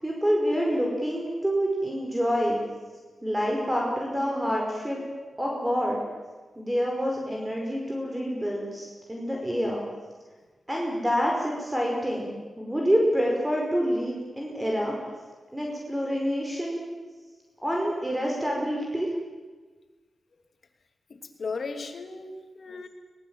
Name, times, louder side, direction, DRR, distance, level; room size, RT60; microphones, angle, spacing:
voice 1, 0.0-2.6 3.2-5.0 5.4-6.0 6.6-9.8 10.7-15.0 15.5-16.9 17.6-19.1, equal, 15° right, -1 dB, 5.3 m, -27 dB
voice 2, 21.1-22.9, left 4 dB, 60° left, 6 dB, 2.8 m, -36 dB
22.5 x 19.0 x 9.1 m, 1.3 s
wide cardioid pair, 85°, 0 cm